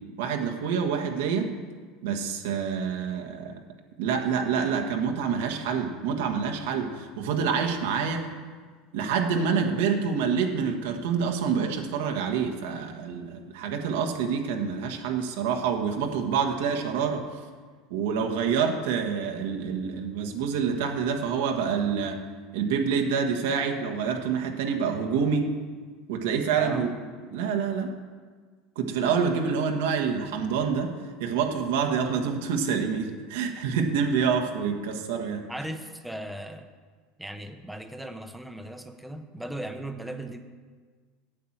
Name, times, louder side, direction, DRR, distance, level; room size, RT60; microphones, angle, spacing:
voice 1, 0.2-1.5 2.0-3.5 4.0-8.2 8.9-17.2 17.9-22.2 22.5-25.5 26.1-26.9 27.3-27.9 28.7-30.9 31.2-35.4, right 6 dB, 80° right, 3 dB, 1.5 m, -27 dB
voice 2, 26.5-27.1 33.8-33.9 35.5-36.7 37.2-40.4, right 1 dB, 5° right, 7 dB, 0.9 m, -38 dB
8.5 x 8.5 x 7.4 m, 1.6 s
supercardioid pair, 125°, 0 cm